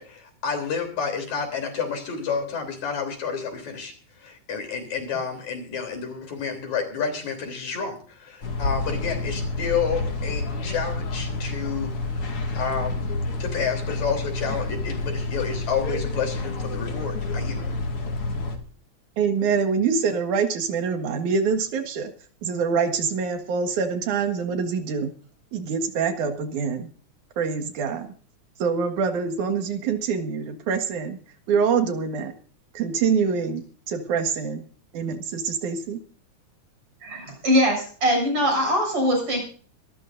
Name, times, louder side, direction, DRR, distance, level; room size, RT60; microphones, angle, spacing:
voice 1, 0.0-3.9 4.2-13.1 13.4-17.6, left 6 dB, 75° left, 5 dB, 4.9 m, -30 dB
sound 1, 8.4-18.6, left 2 dB, 50° left, 2.9 m, -29 dB
voice 2, 19.2-22.1 22.4-25.1 25.5-26.9 27.4-28.1 28.6-31.2 31.5-32.3 32.7-34.6 34.9-36.0, right 6 dB, 90° right, 5 dB, 3.1 m, -25 dB
voice 3, 37.0-39.5, equal, 45° right, 1 dB, 8.4 m, -22 dB
25.0 x 13.5 x 2.6 m, 0.43 s
omnidirectional pair, 3.3 m